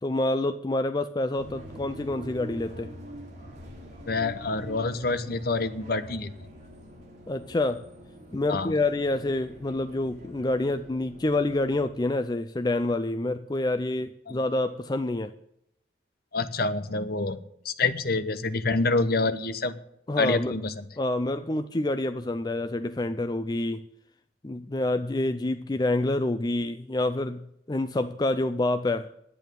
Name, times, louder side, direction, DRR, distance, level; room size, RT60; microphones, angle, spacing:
voice 1, 0.0-2.9 7.3-7.8 8.3-15.3 20.1-20.5 21.0-23.8 24.4-29.1, left 2 dB, 20° left, 9 dB, 0.4 m, -27 dB
sound 1, 1.4-11.8, equal, 35° right, 2.9 m, -45 dB
voice 2, 4.1-6.3 8.5-8.7 14.3-14.4 16.3-17.4 17.6-19.7 20.2-20.8, left 3 dB, 50° left, 13 dB, 0.9 m, -27 dB
10.5 x 8.8 x 9.1 m, 0.75 s
head